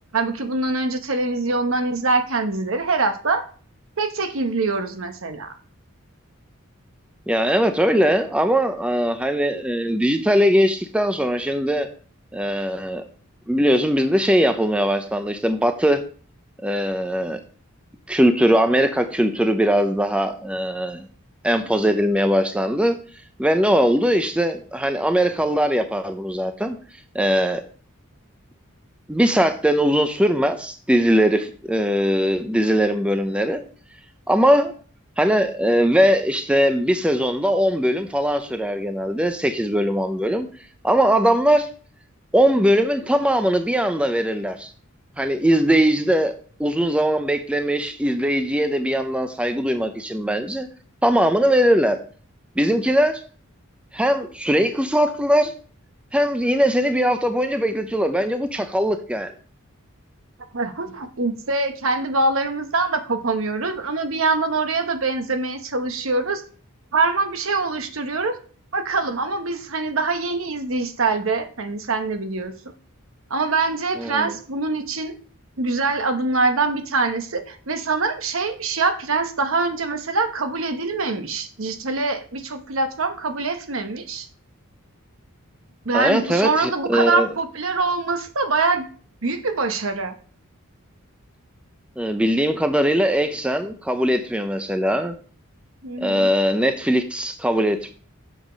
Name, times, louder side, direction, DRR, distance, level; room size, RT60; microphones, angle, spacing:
voice 1, 0.1-3.4 4.0-5.5 60.5-66.4 66.9-68.4 68.7-72.5 73.3-75.1 75.6-84.3 85.8-88.9 89.2-90.1 95.8-96.4, right 3 dB, 65° right, 7 dB, 1.0 m, -24 dB
voice 2, 7.3-11.9 12.3-13.0 13.5-16.0 16.6-17.4 18.1-21.1 21.4-23.0 23.4-26.8 27.1-27.6 29.1-33.6 34.3-34.7 35.2-40.5 40.8-41.7 42.3-44.7 45.2-46.3 46.6-50.7 51.0-52.0 52.6-53.2 53.9-55.5 56.1-59.3 74.0-74.4 85.9-87.3 92.0-95.2 96.0-97.9, equal, 5° right, 8 dB, 0.5 m, -20 dB
7.5 x 4.7 x 5.1 m, 0.43 s
head